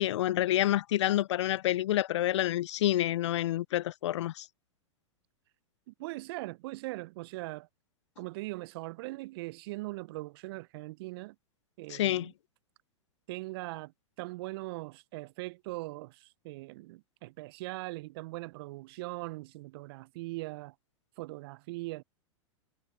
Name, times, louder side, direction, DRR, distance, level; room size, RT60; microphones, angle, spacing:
voice 1, 0.0-4.5 11.9-12.3, left 13 dB, 65° left, 0.4 m, -28 dB
voice 2, 5.9-7.7 8.2-11.4 11.8-12.3 13.3-13.9 14.2-20.7 21.2-22.0, right 21 dB, 50° right, 0.6 m, -40 dB
figure-of-eight pair, 100°, 16 cm